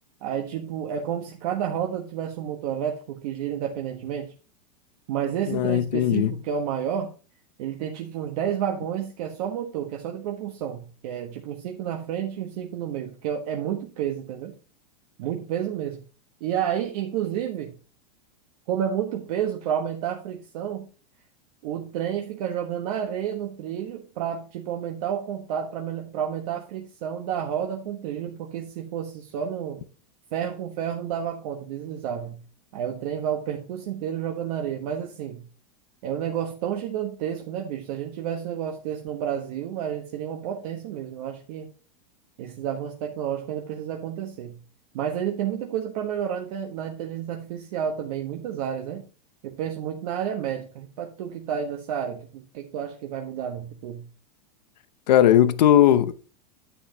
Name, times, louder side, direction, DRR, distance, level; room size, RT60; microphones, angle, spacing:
voice 1, 0.2-4.3 5.1-7.1 7.6-14.5 15.2-16.0 16.4-17.7 18.7-20.9 21.6-29.8 30.3-32.4 32.7-35.4 36.0-41.7 42.4-44.6 44.9-49.0 49.4-54.0, right 9 dB, 60° right, 1.3 m, -30 dB
voice 2, 5.5-6.3 55.1-56.1, left 11 dB, 80° left, 0.8 m, -18 dB
9.9 x 7.9 x 2.9 m
supercardioid pair, 130°, 21 cm